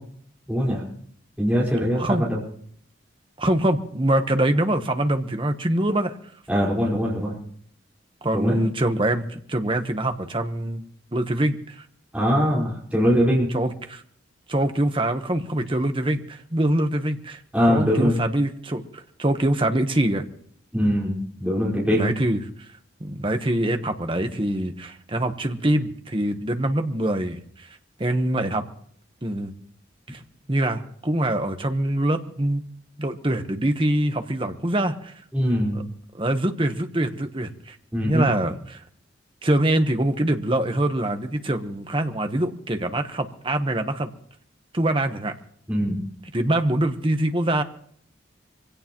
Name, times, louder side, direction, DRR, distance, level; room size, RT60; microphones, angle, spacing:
voice 1, 0.5-0.8 1.4-2.4 6.5-7.3 8.3-8.5 12.1-13.5 17.5-18.2 20.7-22.1 35.3-35.8 37.9-38.3 45.7-46.0, equal, 5° right, -6 dB, 4.5 m, -22 dB
voice 2, 1.9-2.3 3.4-6.1 8.2-10.8 11.1-11.8 13.5-14.0 14.5-17.4 17.6-20.2 21.9-22.5 23.0-28.6 29.2-29.5 30.1-30.2 30.5-32.6 33.0-35.1 35.7-35.8 36.2-37.8 38.0-38.8 39.4-44.1 44.7-45.3 46.3-47.6, right 1 dB, 25° right, 6 dB, 1.1 m, -24 dB
24.5 x 17.0 x 3.0 m, 0.63 s
head